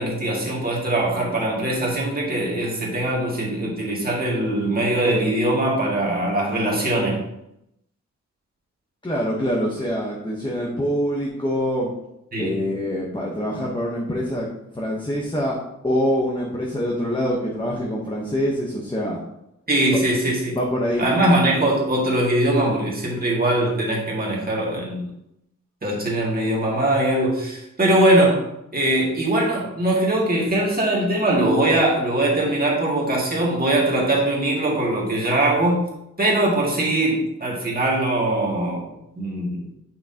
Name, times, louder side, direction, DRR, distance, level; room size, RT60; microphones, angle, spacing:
voice 1, 0.0-7.2 12.3-12.6 19.7-20.5 21.0-25.1 25.8-28.4 28.7-35.8 36.2-38.9 39.2-39.6, right 1 dB, 30° right, -4 dB, 2.0 m, -21 dB
voice 2, 9.0-11.9 12.4-14.5 14.7-15.6 15.8-19.2 20.6-21.1, equal, 15° left, -3 dB, 1.0 m, -25 dB
8.5 x 5.9 x 2.9 m, 0.82 s
wide cardioid pair, 170°, 29 cm